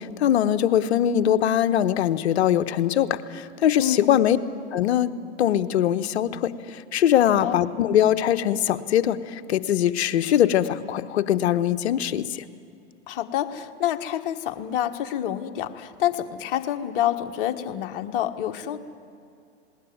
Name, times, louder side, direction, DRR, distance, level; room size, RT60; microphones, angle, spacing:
voice 1, 0.0-4.4 4.7-5.1 5.4-6.5 6.9-9.2 9.5-12.4, left 10 dB, 65° left, 11 dB, 1.1 m, -21 dB
voice 2, 3.8-4.2 7.2-7.6 13.1-18.8, left 11 dB, 50° left, 7 dB, 1.4 m, -28 dB
19.5 x 18.0 x 9.4 m, 2.5 s
hypercardioid pair, 115°, 35 cm